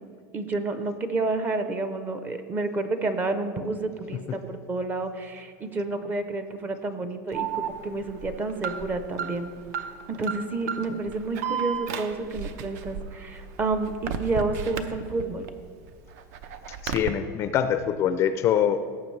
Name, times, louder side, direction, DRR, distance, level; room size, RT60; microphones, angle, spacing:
voice 1, 0.3-9.5 10.1-15.5, right 3 dB, 20° right, 9 dB, 0.6 m, -30 dB
Alarm, 7.3-15.5 15.9-17.1, right 7 dB, 65° right, 0.7 m, -34 dB
voice 2, 16.8-18.8, left 9 dB, 30° left, 10 dB, 0.4 m, -24 dB
17.5 x 7.7 x 3.2 m, 2.2 s
supercardioid pair, 160°, 9 cm